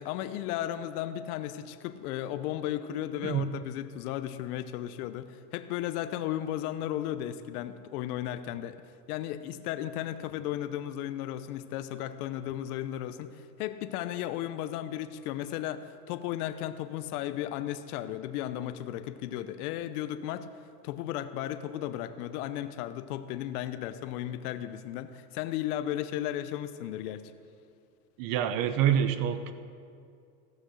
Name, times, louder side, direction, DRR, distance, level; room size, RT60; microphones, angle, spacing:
voice 1, 0.0-8.8 9.1-20.5 20.8-27.3, left 12 dB, 65° left, 11 dB, 0.8 m, -35 dB
voice 2, 28.2-29.5, right 9 dB, 45° right, 11 dB, 0.8 m, -26 dB
15.0 x 6.3 x 6.4 m, 2.4 s
supercardioid pair, 130°, 50 cm